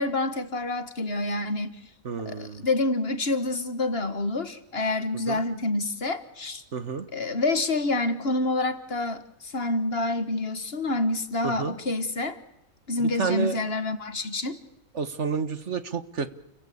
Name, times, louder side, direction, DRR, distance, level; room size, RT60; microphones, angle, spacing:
voice 1, 0.0-1.8 2.3-6.6 7.1-12.4 12.9-14.6, left 2 dB, 45° left, 10 dB, 1.8 m, -27 dB
voice 2, 2.1-2.7 5.3-5.4 6.7-7.1 11.4-11.7 13.0-13.6 15.0-16.3, right 6 dB, 55° right, 12 dB, 1.6 m, -30 dB
30.0 x 22.5 x 8.6 m, 0.84 s
omnidirectional pair, 1.5 m